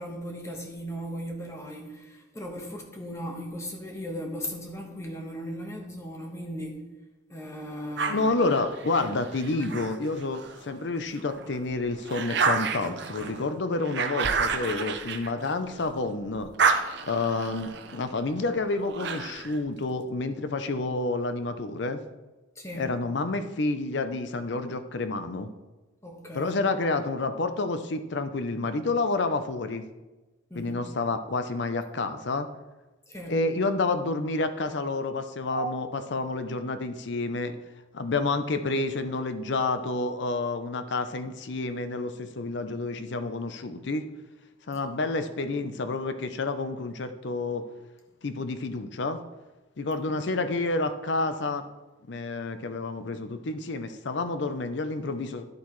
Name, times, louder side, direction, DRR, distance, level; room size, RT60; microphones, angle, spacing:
voice 1, 0.0-6.8 7.3-8.3 22.5-22.9 26.0-26.6 30.5-30.9 33.1-33.4 35.5-35.7 50.0-50.2, equal, 15° left, 1 dB, 1.3 m, -37 dB
sound 1, 8.0-10.7 11.2-16.0 16.3-19.6, right 5 dB, 60° right, 0.7 m, -30 dB
voice 2, 8.1-16.5 17.0-22.0 22.7-25.5 26.3-29.9 30.6-32.5 33.3-37.6 37.9-44.0 44.7-47.6 48.2-49.2 49.8-51.7 52.1-55.5, left 3 dB, 65° left, 10 dB, 0.6 m, -29 dB
11.0 x 8.2 x 3.2 m, 1.1 s
head